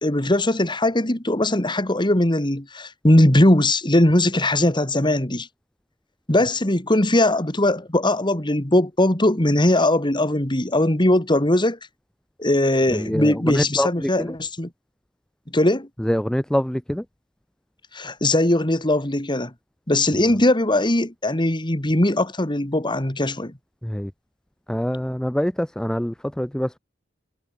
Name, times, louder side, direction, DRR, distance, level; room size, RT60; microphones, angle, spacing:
voice 1, 0.0-5.5 6.3-11.8 12.4-14.7 15.5-15.9 17.9-19.5 19.9-23.5, left 1 dB, 25° left, 2.3 m, -20 dB
voice 2, 13.5-13.9 16.1-17.0 23.9-24.1 24.7-26.8, equal, 5° left, 0.4 m, -24 dB
head